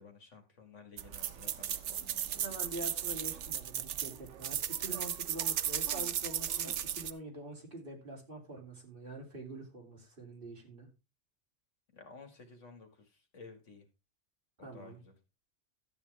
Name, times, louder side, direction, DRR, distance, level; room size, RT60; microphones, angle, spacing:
voice 1, 0.0-2.4 11.9-13.1 13.3-13.9 14.6-15.1, left 4 dB, 85° left, 6 dB, 2.3 m, -54 dB
sound 1, 1.0-7.1, right 9 dB, 75° right, 1.0 m, -36 dB
voice 2, 2.3-10.9 14.6-15.0, right 2 dB, 50° right, 0 dB, 3.2 m, -45 dB
12.0 x 8.7 x 3.4 m, 0.27 s
omnidirectional pair, 1.2 m